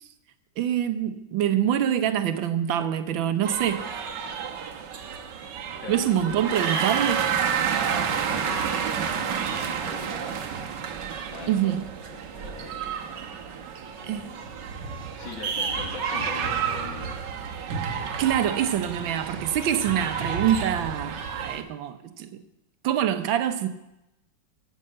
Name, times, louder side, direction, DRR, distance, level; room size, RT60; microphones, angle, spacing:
voice 1, 0.6-3.9 5.9-7.2 11.5-11.8 14.1-14.3 18.2-22.4 22.8-23.7, right 10 dB, 90° right, 1.6 m, -25 dB
sound 1, 3.4-21.6, right 7 dB, 70° right, 1.6 m, -30 dB
voice 2, 5.8-6.4 7.7-8.7 9.1-10.3 11.3-11.8 12.1-12.9 13.2-13.6 14.0-14.6 15.2-17.2, left 4 dB, 85° left, 2.5 m, -42 dB
13.5 x 6.6 x 7.5 m
omnidirectional pair, 2.1 m